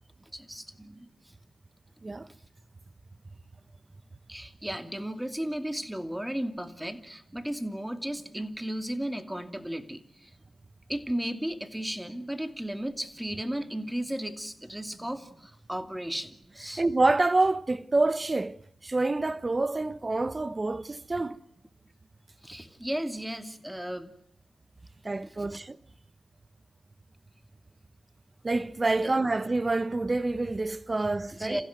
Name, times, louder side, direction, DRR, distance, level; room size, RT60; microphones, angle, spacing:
voice 1, 0.3-1.3 2.3-2.4 4.3-10.3 10.9-16.8 22.4-24.1 25.5-25.6 29.0-29.1 31.3-31.7, right 1 dB, 5° right, 2.5 m, -35 dB
voice 2, 16.8-21.4 25.0-25.8 28.4-31.6, right 2 dB, 35° right, 1.1 m, -27 dB
28.0 x 15.5 x 9.4 m
cardioid pair, 45°, 0 cm